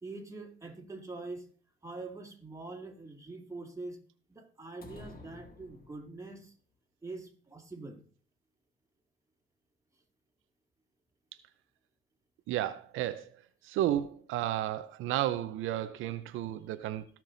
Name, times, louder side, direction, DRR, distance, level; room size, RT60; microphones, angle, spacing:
voice 1, 0.0-1.5 1.8-4.0 4.3-6.5 7.0-8.0, right 3 dB, 15° right, 1 dB, 2.7 m, -44 dB
sound 1, 4.8-6.4, left 3 dB, 50° left, 2.2 m, -51 dB
voice 2, 12.5-13.3 13.6-17.1, right 12 dB, 90° right, 12 dB, 0.7 m, -32 dB
18.0 x 6.1 x 3.9 m, 0.41 s
cardioid pair, 90°, 20 cm